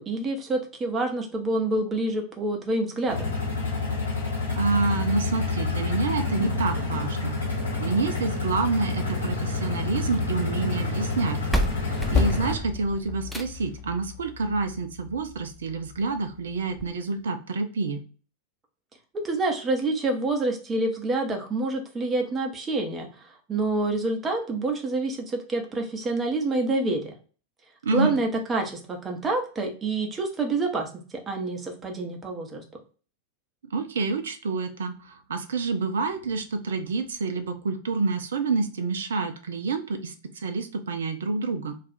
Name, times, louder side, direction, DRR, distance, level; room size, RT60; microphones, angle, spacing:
voice 1, 0.0-3.3 19.2-27.0 27.9-32.6, right 2 dB, 20° right, 3 dB, 0.7 m, -27 dB
sound 1, 3.1-12.5, left 3 dB, 70° left, 1.0 m, -28 dB
voice 2, 4.6-7.4 7.8-11.4 11.8-18.0 27.8-28.2 33.7-41.8, right 4 dB, 65° right, 7 dB, 0.4 m, -28 dB
sound 2, 9.1-10.3 11.2-11.3 11.5-13.8 15.1-15.2 15.7-15.8 16.1-16.2 16.8-16.9, equal, ahead, 0.4 m, -32 dB
Percussion, 12.1-17.0, left 5 dB, 25° left, 0.8 m, -32 dB
2.4 x 2.4 x 4.1 m, 0.39 s
figure-of-eight pair, 90°, 0 cm